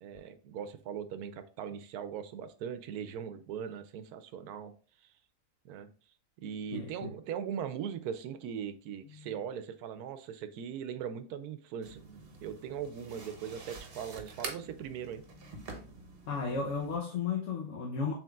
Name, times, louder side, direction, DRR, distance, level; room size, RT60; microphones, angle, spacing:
voice 1, 0.0-4.7 5.0-5.1 5.6-5.9 6.4-15.2, right 8 dB, 80° right, 1.1 m, -40 dB
voice 2, 6.7-7.1 9.2-9.3 16.3-18.1, left 5 dB, 60° left, 1.0 m, -34 dB
sound 1, 11.8-17.0, right 3 dB, 45° right, 1.0 m, -47 dB
7.0 x 3.2 x 2.3 m
omnidirectional pair, 1.6 m